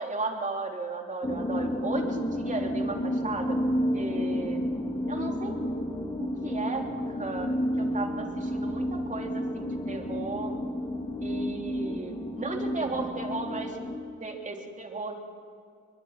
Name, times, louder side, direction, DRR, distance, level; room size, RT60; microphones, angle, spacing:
voice 1, 0.0-3.6 3.9-4.6 5.1-5.7 6.2-6.8 7.1-10.5 11.2-13.8 14.2-15.1, right 3 dB, 25° right, 2 dB, 3.5 m, -35 dB
sound 1, 1.2-14.0, equal, 15° left, 2.6 m, -31 dB
22.5 x 22.0 x 5.8 m, 2.3 s
cardioid pair, 90°, 30 cm